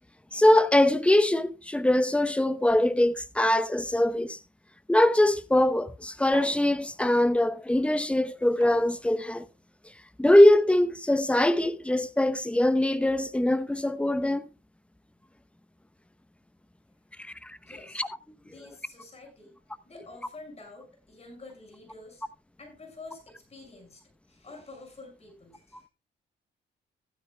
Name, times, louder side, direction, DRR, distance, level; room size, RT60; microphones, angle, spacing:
voice 1, 0.3-4.4 4.9-9.4 10.2-14.4 17.2-17.6 17.9-18.1, left 1 dB, 5° left, 0.8 m, -22 dB
sound 1, 6.3-7.3 8.6-9.4, right 3 dB, 20° right, 1.6 m, -46 dB
voice 2, 17.6-18.0 18.5-19.6 19.8-22.2 22.6-24.0 24.3-25.9, left 2 dB, 30° left, 5.9 m, -48 dB
15.0 x 12.5 x 2.2 m
cardioid pair, 90°, 20 cm